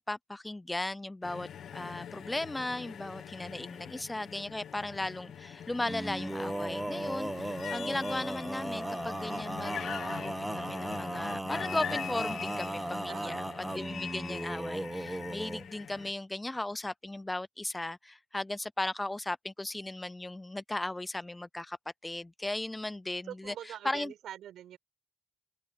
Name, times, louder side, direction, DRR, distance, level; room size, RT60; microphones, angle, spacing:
voice 1, 0.0-21.8 22.0-23.5 23.8-24.1, left 2 dB, 15° left, 0.5 m, -37 dB
sound 1, 1.2-16.1, left 9 dB, 75° left, 1.3 m, -43 dB
Male singing, 5.8-15.6, right 1 dB, 10° right, 1.7 m, -36 dB
voice 2, 13.1-13.4 23.2-24.8, right 11 dB, 80° right, 6.3 m, -44 dB
supercardioid pair, 65°, 0 cm